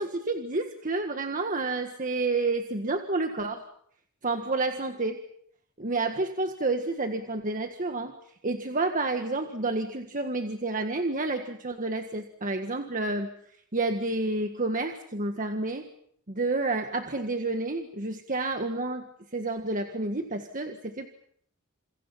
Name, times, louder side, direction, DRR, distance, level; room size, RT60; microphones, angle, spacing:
voice 1, 0.0-3.6 4.2-5.2 5.8-8.1 8.4-13.3 13.7-15.9 16.3-21.1, right 3 dB, 35° right, 5 dB, 1.7 m, -29 dB
30.0 x 28.0 x 5.8 m, 0.68 s
head